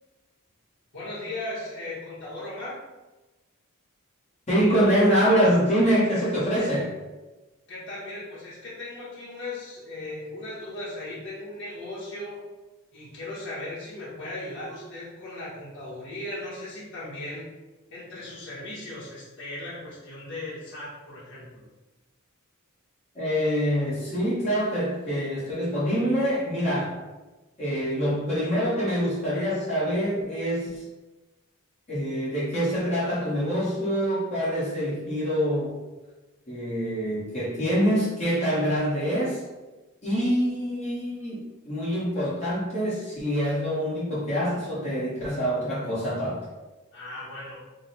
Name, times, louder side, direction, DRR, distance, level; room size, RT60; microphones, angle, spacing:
voice 1, 0.9-2.8 7.7-12.4 12.9-17.5 17.9-21.6 38.5-38.7 46.9-47.6, left 2 dB, 55° left, -9 dB, 1.5 m, -37 dB
voice 2, 4.5-6.9 23.1-27.0 27.6-30.8 31.9-35.7 36.5-39.4 40.0-46.4, equal, 30° left, -9 dB, 1.3 m, -25 dB
3.7 x 2.3 x 4.1 m, 1.1 s
head